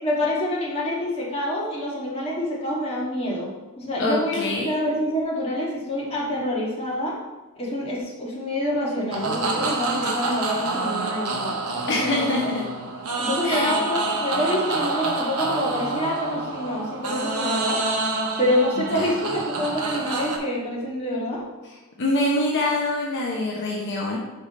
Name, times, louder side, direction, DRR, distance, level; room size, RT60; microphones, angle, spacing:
voice 1, 0.0-7.2 7.6-11.6 11.9-12.7 13.2-17.8 18.4-21.5, left 1 dB, 25° left, -5 dB, 1.5 m, -27 dB
voice 2, 4.0-4.7 11.9-12.6 13.4-13.8 18.8-19.1 21.6-24.2, left 1 dB, 55° left, -3 dB, 0.8 m, -25 dB
sound 1, 9.1-20.4, right 3 dB, 85° right, 0.9 m, -27 dB
5.3 x 4.8 x 4.1 m, 1.1 s
head